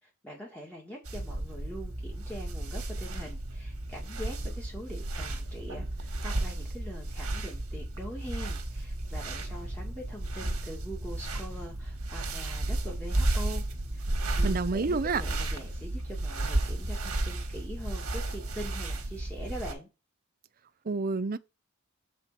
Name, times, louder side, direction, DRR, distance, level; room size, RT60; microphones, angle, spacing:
voice 1, 0.0-13.6 13.9-19.9, equal, 5° left, 2.1 m, -43 dB
sound 1, 1.1-19.7, right 1 dB, 90° right, 1.9 m, -33 dB
voice 2, 14.4-15.2 20.9-21.4, right 4 dB, 40° right, 0.6 m, -28 dB
7.6 x 4.7 x 4.3 m
head